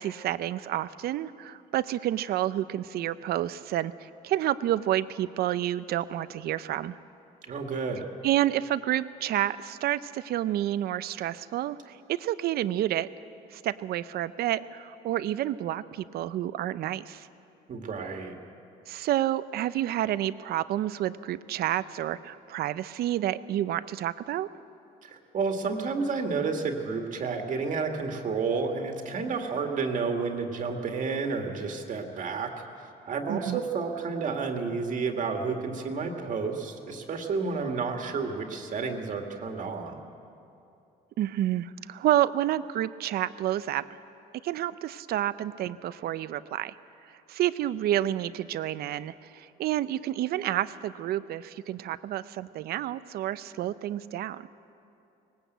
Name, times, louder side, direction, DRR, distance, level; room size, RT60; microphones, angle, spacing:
voice 1, 0.0-7.0 8.2-13.1 13.5-17.3 18.9-24.5 33.3-33.6 41.2-43.9 44.4-46.7 47.3-54.5, right 12 dB, 65° right, 15 dB, 0.7 m, -29 dB
voice 2, 7.4-8.0 17.7-18.3 25.0-32.5 33.1-40.0, right 4 dB, 50° right, 3 dB, 2.1 m, -31 dB
19.5 x 19.0 x 8.1 m, 2.7 s
cardioid pair, 110°, 17 cm